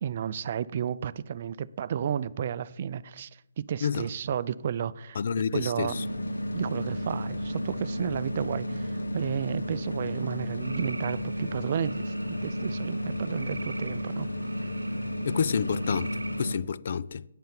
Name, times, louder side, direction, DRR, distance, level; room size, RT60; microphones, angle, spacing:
voice 1, 0.0-3.3 3.6-5.2 5.5-6.0 6.5-14.3, right 8 dB, 45° right, 0.4 m, -32 dB
voice 2, 5.2-6.0 15.2-17.3, left 6 dB, 50° left, 0.4 m, -29 dB
sound 1, 5.9-16.6, equal, 90° left, 1.4 m, -33 dB
sound 2, 10.6-16.5, right 2 dB, 90° right, 0.9 m, -45 dB
9.2 x 9.1 x 6.9 m
figure-of-eight pair, 150°, 0 cm